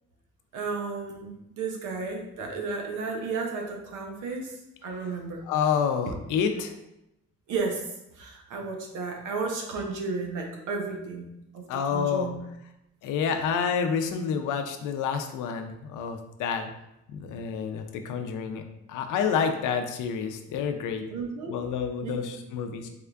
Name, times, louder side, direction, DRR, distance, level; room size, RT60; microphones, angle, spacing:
voice 1, 0.5-5.4 7.5-7.8 8.1-11.3 11.5-12.4 21.1-21.5 22.0-22.2, right 4 dB, 85° right, 1 dB, 0.8 m, -33 dB
voice 2, 5.4-6.7 11.7-12.3 13.0-16.7 17.1-18.6 18.9-21.1 21.5-22.9, left 6 dB, 85° left, 6 dB, 0.5 m, -28 dB
3.5 x 2.3 x 3.3 m, 0.85 s
cardioid pair, 90°, 30 cm